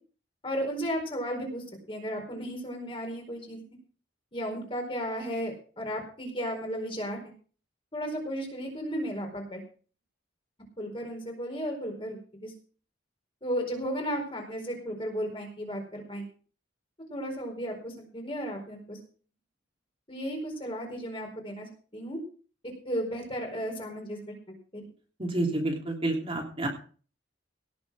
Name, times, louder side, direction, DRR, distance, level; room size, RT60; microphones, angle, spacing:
voice 1, 0.4-3.6 4.3-7.3 7.9-9.6 10.8-12.5 13.4-16.3 17.1-19.0 20.1-21.7 21.9-22.2 22.8-24.2 24.5-24.8, equal, 30° left, 2 dB, 4.6 m, -34 dB
voice 2, 25.2-26.7, right 2 dB, 30° right, 0 dB, 3.2 m, -29 dB
18.0 x 7.2 x 6.3 m, 0.41 s
head